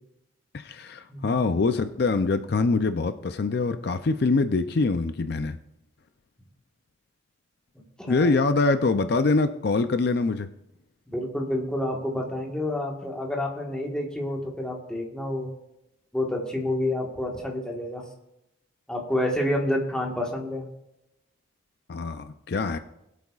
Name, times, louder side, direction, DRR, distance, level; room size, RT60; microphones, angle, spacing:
voice 1, 0.5-5.6 8.1-10.5 21.9-22.8, left 3 dB, 55° left, 9 dB, 0.4 m, -24 dB
voice 2, 1.1-1.4 8.0-8.3 11.1-15.5 16.1-18.0 18.9-20.7, left 1 dB, 5° left, -1 dB, 1.4 m, -29 dB
21.0 x 8.3 x 2.4 m, 0.86 s
head